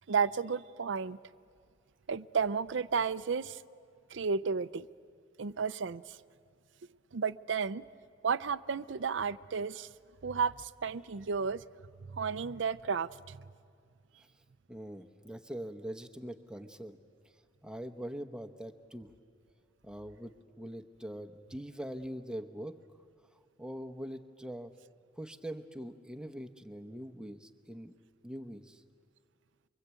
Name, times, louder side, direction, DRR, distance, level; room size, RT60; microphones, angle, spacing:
voice 1, 0.1-1.2 2.1-3.6 4.1-4.9 5.4-6.2 7.1-7.8 8.2-9.9 10.2-11.6 12.1-13.4, right 5 dB, 80° right, 16 dB, 0.6 m, -32 dB
voice 2, 14.7-17.0 17.6-19.1 19.8-22.8 23.6-24.7 25.2-27.9 28.2-28.8, equal, 5° right, 7 dB, 1.0 m, -43 dB
25.0 x 24.0 x 8.3 m, 2.1 s
head